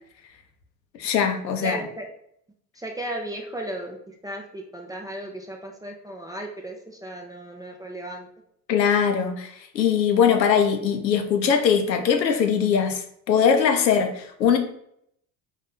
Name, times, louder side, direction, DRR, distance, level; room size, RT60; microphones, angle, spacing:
voice 1, 1.0-1.8 8.7-14.6, left 7 dB, 85° left, 0.7 m, -21 dB
voice 2, 1.6-2.1 2.8-8.3, right 1 dB, 10° right, 0.3 m, -35 dB
3.9 x 2.6 x 3.9 m
figure-of-eight pair, 60°, 49 cm